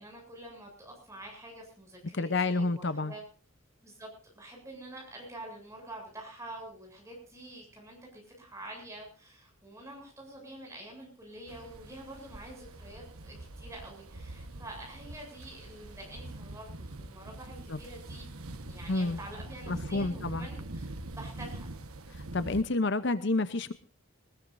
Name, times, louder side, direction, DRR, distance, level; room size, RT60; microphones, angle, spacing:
voice 1, 0.0-3.2 3.8-18.3 18.6-21.7, right 1 dB, 15° right, 0 dB, 7.8 m, -47 dB
voice 2, 2.1-3.1 17.7-17.8 18.9-19.2 19.7-20.5 22.1-23.7, left 2 dB, 55° left, 13 dB, 0.8 m, -29 dB
sound 1, 11.5-22.6, right 2 dB, 85° right, 1.4 m, -44 dB
21.0 x 20.5 x 2.7 m, 0.36 s
head